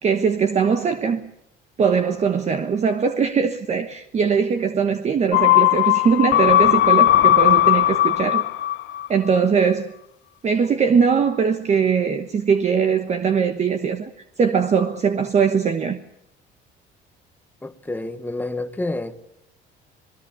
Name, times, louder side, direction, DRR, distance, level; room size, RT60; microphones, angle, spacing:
voice 1, 0.0-1.3 1.8-8.4 9.1-9.9 10.4-14.1 14.4-16.0, right 6 dB, 35° right, 1.3 m, -20 dB
sound 1, 5.3-9.1 9.4-9.5, left 14 dB, 65° left, 0.9 m, -17 dB
voice 2, 17.6-19.2, left 2 dB, 10° left, 1.4 m, -29 dB
27.5 x 19.0 x 7.0 m
cardioid pair, 135°, 20 cm